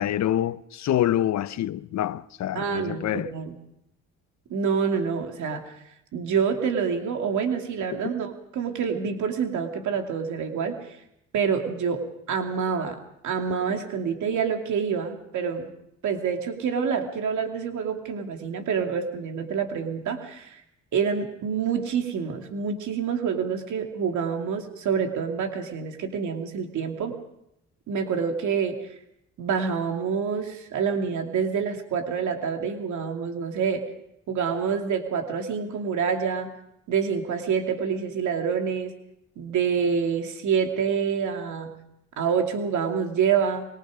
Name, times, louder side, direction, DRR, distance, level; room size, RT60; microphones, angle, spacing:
voice 1, 0.0-3.3 8.0-8.1, left 12 dB, 65° left, 0.8 m, -26 dB
voice 2, 2.5-3.6 4.5-5.7 6.1-11.0 11.3-15.7 16.0-20.6 20.9-27.2 27.9-28.8 29.4-33.8 34.3-36.5 36.9-38.9 39.4-41.8 42.2-43.7, right 6 dB, 75° right, 2.6 m, -27 dB
24.5 x 21.5 x 5.1 m
cardioid pair, 90°, 30 cm